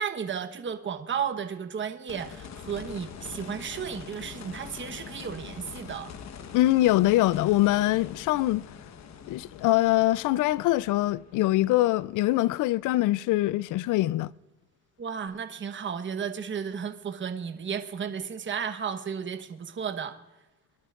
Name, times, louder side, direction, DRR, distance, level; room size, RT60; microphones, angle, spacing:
voice 1, 0.0-6.1 15.0-20.1, right 7 dB, 40° right, 1.1 m, -33 dB
sound 1, 2.1-13.0 15.3-15.4, left 7 dB, 65° left, 1.2 m, -44 dB
voice 2, 6.5-8.6 9.3-14.3, left 16 dB, 85° left, 0.5 m, -23 dB
23.5 x 12.0 x 2.5 m
cardioid pair, 90°, 30 cm